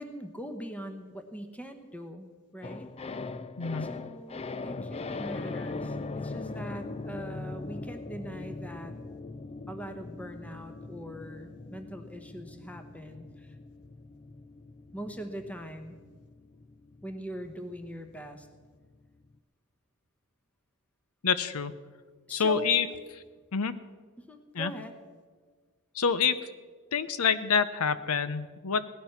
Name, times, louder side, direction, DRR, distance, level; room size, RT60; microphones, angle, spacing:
voice 1, 0.0-2.9 3.8-8.9 9.7-13.6 14.9-16.0 17.0-18.5 22.3-22.8 24.2-25.0, right 1 dB, 5° left, 7 dB, 1.0 m, -42 dB
sound 1, 2.6-19.0 19.2-19.4, left 3 dB, 30° left, 0.4 m, -41 dB
voice 2, 21.2-21.7 22.3-22.9 23.5-23.7 24.5-24.7 25.9-26.4 26.9-28.8, left 6 dB, 80° left, 14 dB, 0.8 m, -27 dB
17.5 x 12.0 x 5.8 m, 1.5 s
head